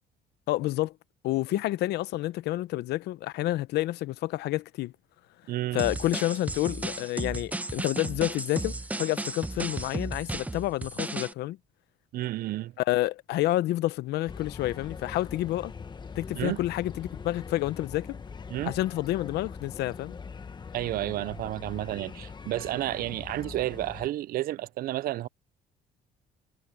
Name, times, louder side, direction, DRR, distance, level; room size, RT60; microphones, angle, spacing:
voice 1, 0.5-0.9 1.2-4.9 5.7-11.6 12.8-15.7 16.2-18.2 18.6-20.2, left 16 dB, 75° left, 0.8 m, -29 dB
voice 2, 5.5-5.8 12.1-12.7 16.3-16.6 18.5-18.7 20.7-25.3, right 15 dB, 60° right, 0.5 m, -31 dB
sound 1, 5.8-11.3, right 2 dB, 10° right, 1.0 m, -34 dB
sound 2, 14.3-24.1, left 5 dB, 25° left, 1.2 m, -42 dB
cardioid pair, 110°, 17 cm